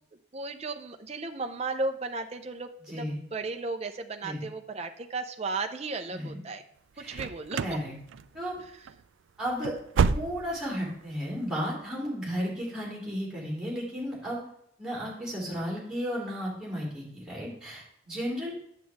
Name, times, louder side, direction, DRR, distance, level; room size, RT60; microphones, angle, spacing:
voice 1, 0.3-6.6 7.0-7.8, right 3 dB, 35° right, 6 dB, 0.6 m, -35 dB
voice 2, 2.9-3.2 4.2-4.4 6.1-6.4 7.0-7.2 7.6-7.9 8.3-8.6 9.4-9.7 10.0-14.4 14.8-18.5, equal, 5° right, -6 dB, 3.1 m, -34 dB
sound 1, 7.1-7.8 8.1-8.6 8.9-9.0 9.4-10.7 11.0-11.1 11.6-11.7, right 5 dB, 85° right, 0.4 m, -28 dB
9.1 x 7.5 x 3.5 m, 0.75 s
head